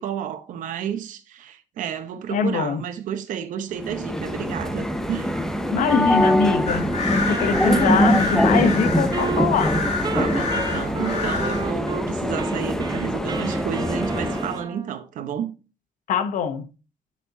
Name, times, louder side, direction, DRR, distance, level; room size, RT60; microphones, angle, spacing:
voice 1, 0.0-5.4 10.1-15.5, right 8 dB, 85° right, 1.0 m, -31 dB
voice 2, 2.3-2.8 5.7-9.8 16.1-16.7, left 6 dB, 85° left, 0.9 m, -23 dB
sound 1, 3.8-14.6, equal, 5° left, 0.7 m, -23 dB
sound 2, 6.7-11.7, left 4 dB, 55° left, 2.3 m, -28 dB
Wind instrument woodwind instrument, 7.3-12.1 12.4-15.0, right 4 dB, 30° right, 0.7 m, -33 dB
11.5 x 4.2 x 2.8 m
cardioid pair, 115°, 13 cm